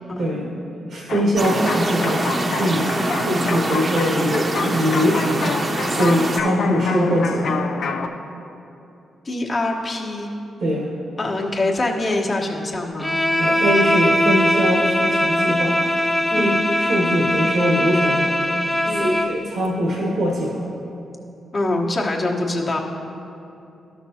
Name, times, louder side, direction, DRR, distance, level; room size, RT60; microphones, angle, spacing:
voice 1, 0.2-0.5 0.9-2.3 2.6-5.5 5.9-7.6 10.6-10.9 13.4-15.8 16.3-16.5 16.8-18.3 19.0-20.7, equal, 70° right, -3 dB, 1.1 m, -22 dB
sound 1, 1.1-8.1, left 5 dB, 70° left, 0.4 m, -28 dB
sound 2, 1.4-6.4, right 2 dB, 45° right, 0.8 m, -25 dB
voice 2, 9.2-10.3 11.2-13.2 16.3-16.6 18.9-19.2 21.5-22.8, left 2 dB, 45° left, -1 dB, 1.1 m, -24 dB
Bowed string instrument, 13.0-19.4, left 1 dB, 10° left, 0.8 m, -20 dB
13.0 x 6.0 x 2.8 m, 2.8 s
supercardioid pair, 55°, 0 cm